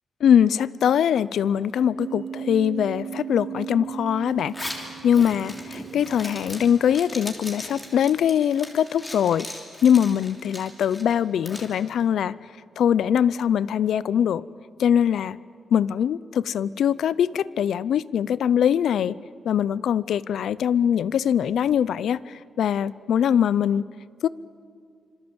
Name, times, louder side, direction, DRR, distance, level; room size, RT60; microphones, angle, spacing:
voice 1, 0.2-9.5 9.8-12.3 12.8-14.4 14.8-15.4 15.7-19.1 19.4-23.9 24.2-24.3, left 9 dB, 80° left, 19 dB, 0.6 m, -22 dB
sound 1, 2.0-9.0, right 9 dB, 65° right, 0.7 m, -38 dB
Zipper (clothing), 4.4-11.7, left 1 dB, 15° left, 3.2 m, -39 dB
26.5 x 26.5 x 8.0 m, 2.3 s
wide cardioid pair, 170°, 0 cm